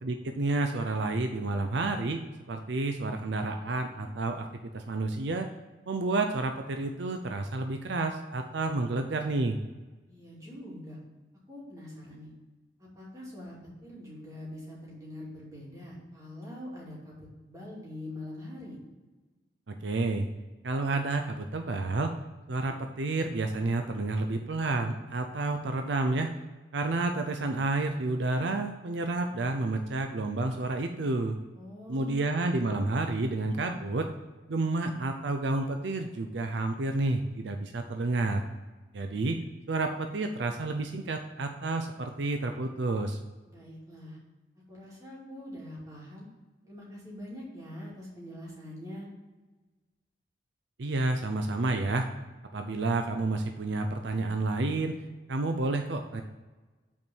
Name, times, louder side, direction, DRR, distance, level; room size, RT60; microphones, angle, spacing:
voice 1, 0.0-2.2 2.5-4.5 4.7-5.5 5.9-9.6 19.7-20.3 20.6-22.1 22.5-26.3 26.7-31.4 31.9-34.1 34.5-38.4 38.9-39.4 39.7-43.2 50.8-52.1 52.5-55.0 55.3-56.2, right 2 dB, 70° right, 5 dB, 0.6 m, -30 dB
voice 2, 10.1-11.0 11.5-12.3 12.8-18.8 31.5-32.2 43.4-44.2 44.7-46.3 46.6-49.1, left 1 dB, 20° right, -6 dB, 2.5 m, -44 dB
5.9 x 4.5 x 6.1 m, 1.2 s
head